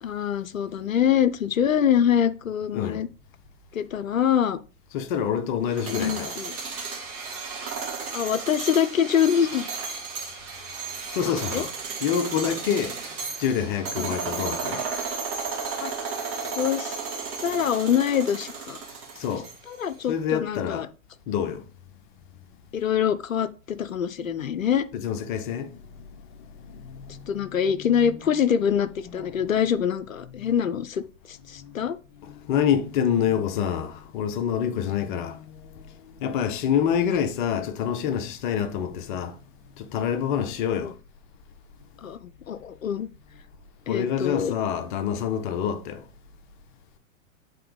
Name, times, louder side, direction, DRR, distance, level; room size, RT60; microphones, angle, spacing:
voice 1, 0.0-3.1 3.7-4.6 5.9-6.5 8.1-9.6 11.3-11.6 14.0-14.2 15.8-15.9 16.6-17.0 17.4-18.8 19.7-20.9 22.7-24.8 27.3-32.0 40.8-40.9 42.0-43.1 43.9-44.5, left 8 dB, 75° left, 0.6 m, -25 dB
voice 2, 4.9-6.3 11.1-11.7 12.0-14.9 19.1-19.5 20.1-20.9 21.3-21.7 22.3-22.4 24.9-28.7 29.0-29.4 30.2-30.5 31.5-31.8 32.2-39.4 39.8-40.9 42.1-42.2 43.9-46.1, left 8 dB, 35° left, 0.8 m, -28 dB
sound 1, 5.7-19.8, right 5 dB, 35° right, 1.8 m, -34 dB
7.7 x 4.0 x 3.3 m
figure-of-eight pair, 100°, 41 cm